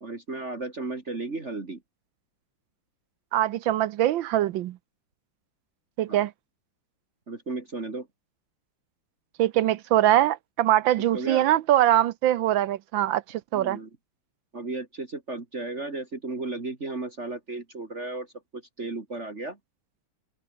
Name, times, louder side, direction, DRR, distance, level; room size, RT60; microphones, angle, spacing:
voice 1, 0.0-1.8 6.1-6.3 7.3-8.1 11.1-11.5 13.5-13.9 14.5-19.6, right 3 dB, 30° right, 2.6 m, -34 dB
voice 2, 3.3-4.8 6.0-6.3 9.4-13.8, right 13 dB, 70° right, 1.4 m, -23 dB
omnidirectional pair, 2.3 m